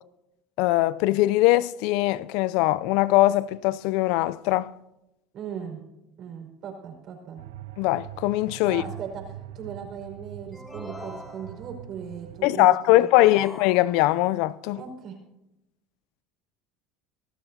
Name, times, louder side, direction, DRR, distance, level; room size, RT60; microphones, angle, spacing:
voice 1, 0.6-4.7 7.8-8.8 12.4-14.8, left 17 dB, 70° left, 0.4 m, -21 dB
voice 2, 5.3-5.8 6.2-7.4 8.6-9.2 9.5-13.3 14.7-15.2, right 7 dB, 50° right, 5.0 m, -38 dB
sound 1, 7.4-12.5, right 12 dB, 80° right, 0.5 m, -43 dB
sound 2, 10.5-11.9 12.9-14.3, left 1 dB, 10° left, 4.2 m, -43 dB
26.5 x 13.5 x 2.8 m
supercardioid pair, 95°, 0 cm